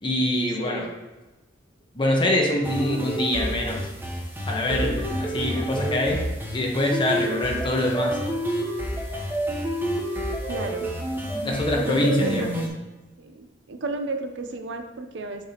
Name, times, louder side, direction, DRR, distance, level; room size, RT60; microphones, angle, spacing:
voice 1, 0.0-0.9 1.9-3.9 4.5-6.2 6.5-8.2 11.4-12.5, left 1 dB, 25° left, -1 dB, 1.1 m, -24 dB
voice 2, 0.6-0.9 10.5-10.9 11.8-12.7 13.2-15.5, right 3 dB, 70° right, 6 dB, 0.6 m, -32 dB
sound 1, 2.6-12.7, equal, 10° right, 0.9 m, -29 dB
6.5 x 5.9 x 2.9 m, 1.2 s
head